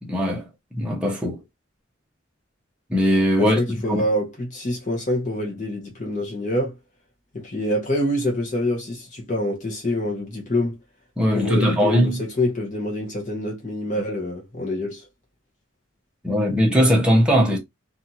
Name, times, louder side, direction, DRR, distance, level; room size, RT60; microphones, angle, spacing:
voice 1, 0.0-0.5 0.7-1.4 2.9-3.6 3.9-4.0 11.2-12.2 16.2-17.6, equal, 5° right, 0.8 m, -19 dB
voice 2, 3.4-6.7 7.3-10.8 11.3-15.1, left 1 dB, 40° left, 0.8 m, -26 dB
2.6 x 2.5 x 2.8 m
head